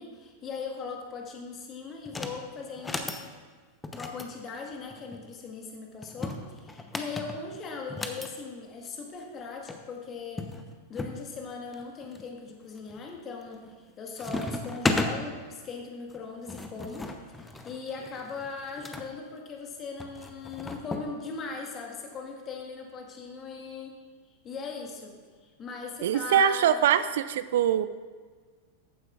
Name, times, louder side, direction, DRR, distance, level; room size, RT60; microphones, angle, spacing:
voice 1, 0.0-3.2 4.0-10.5 10.9-13.7 14.0-23.9 24.4-25.1 25.4-26.9, left 4 dB, 30° left, 1 dB, 1.5 m, -39 dB
sound 1, 2.0-2.4 2.7-3.2 3.8-5.2 6.0-8.3 9.4-9.5 9.7-9.8 10.4-11.2 11.7-12.2 12.8-13.2 13.5-13.9 14.2-15.1 16.1-19.1 20.0-21.1, left 2 dB, 10° left, 0.8 m, -34 dB
voice 2, 26.0-27.9, right 9 dB, 55° right, 14 dB, 0.3 m, -23 dB
14.0 x 9.3 x 2.4 m, 1.5 s
figure-of-eight pair, 90°, 0 cm